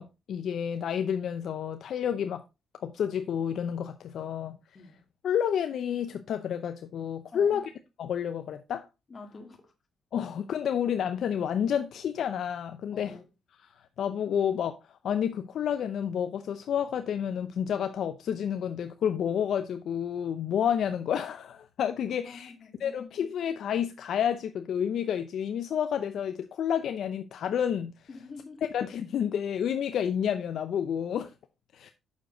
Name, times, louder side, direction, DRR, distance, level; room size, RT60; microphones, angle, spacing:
voice 1, 0.0-2.4 2.8-4.6 5.2-7.7 8.0-8.9 10.1-13.2 13.6-22.5 22.8-28.1 28.7-31.3 31.7-31.9, left 8 dB, 65° left, 0.6 m, -30 dB
voice 2, 7.3-7.7 9.1-9.7 12.9-13.3 22.3-23.2 28.1-28.7, left 4 dB, 35° left, 2.0 m, -46 dB
7.2 x 6.5 x 3.8 m
cardioid pair, 90°, 0 cm